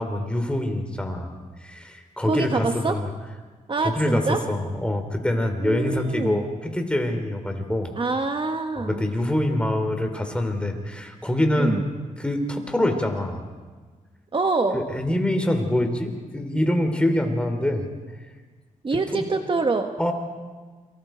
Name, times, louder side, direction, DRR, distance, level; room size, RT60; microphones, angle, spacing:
voice 1, 0.0-1.3 1.6-3.1 3.8-7.9 8.8-11.8 12.2-13.4 14.7-17.9 18.9-19.2 20.0-20.1, left 1 dB, 5° left, 4 dB, 3.4 m, -25 dB
voice 2, 2.2-3.0 3.7-4.4 5.6-6.4 8.0-9.0 11.6-11.8 14.3-14.8 18.8-19.9, right 3 dB, 35° right, 6 dB, 1.2 m, -25 dB
28.5 x 24.5 x 4.5 m, 1.4 s
cardioid pair, 90°, 14 cm